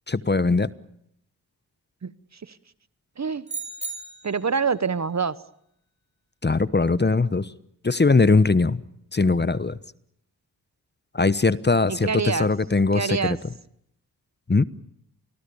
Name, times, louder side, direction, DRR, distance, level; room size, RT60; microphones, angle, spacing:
voice 1, 0.1-0.7 6.4-7.5 7.8-8.8 9.1-9.8 11.1-13.4 14.5-14.6, left 3 dB, 25° left, 16 dB, 1.1 m, -20 dB
voice 2, 2.0-2.6 3.2-3.4 4.2-5.3 11.9-12.5 12.9-13.4, right 5 dB, 40° right, 16 dB, 1.0 m, -26 dB
sound 1, 3.5-4.6, right 4 dB, 15° right, 5.6 m, -35 dB
26.5 x 20.5 x 7.1 m, 0.75 s
supercardioid pair, 40°, 40 cm